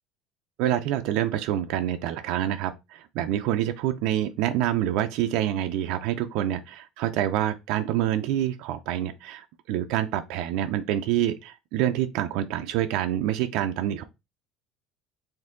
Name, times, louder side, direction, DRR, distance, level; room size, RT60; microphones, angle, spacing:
voice 1, 0.6-14.0, right 12 dB, 60° right, 0.4 m, -27 dB
4.5 x 2.6 x 3.7 m
cardioid pair, 160°, 0 cm